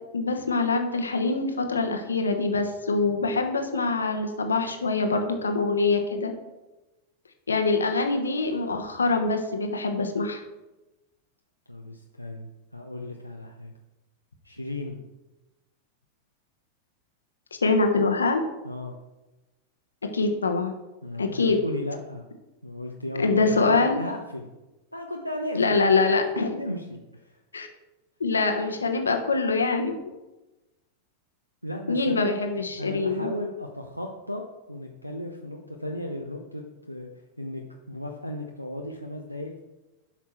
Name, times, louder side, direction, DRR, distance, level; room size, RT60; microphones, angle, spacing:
voice 1, 0.1-6.3 7.5-10.4 17.6-18.4 20.1-20.7 21.2-21.6 23.2-24.0 25.5-26.6 27.5-27.7 28.2-29.9 31.9-33.3, left 3 dB, 75° left, 6 dB, 1.2 m, -24 dB
voice 2, 11.7-13.7 14.4-15.0 18.6-18.9 21.0-22.2 22.6-23.7 24.0-24.5 24.9-25.6 26.1-27.3 31.6-32.4 32.8-34.4 34.7-37.1 37.4-39.6, left 1 dB, 90° left, 0 dB, 0.8 m, -35 dB
11.0 x 6.0 x 4.6 m, 1.1 s
figure-of-eight pair, 90°, 0 cm